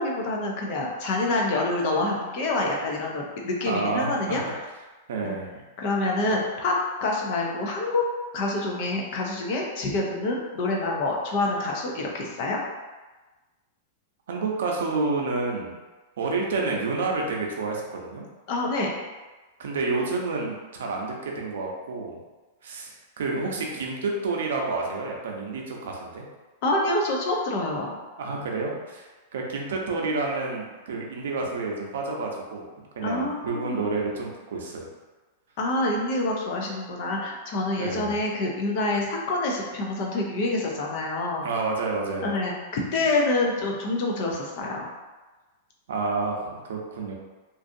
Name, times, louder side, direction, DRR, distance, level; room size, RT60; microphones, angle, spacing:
voice 1, 0.0-4.6 5.2-5.3 5.8-6.8 7.0-8.0 8.3-12.6 18.5-18.9 26.6-28.0 33.0-33.8 35.6-41.4 42.2-44.9, left 2 dB, 40° left, -1 dB, 0.4 m, -27 dB
voice 2, 3.6-4.4 5.1-5.6 14.3-15.7 16.2-18.2 19.6-22.2 22.6-22.9 23.2-26.2 28.2-34.9 37.7-38.2 41.4-42.3 45.9-47.1, right 3 dB, 80° right, 0 dB, 0.6 m, -29 dB
2.6 x 2.4 x 2.5 m, 1.2 s
supercardioid pair, 175°, 0 cm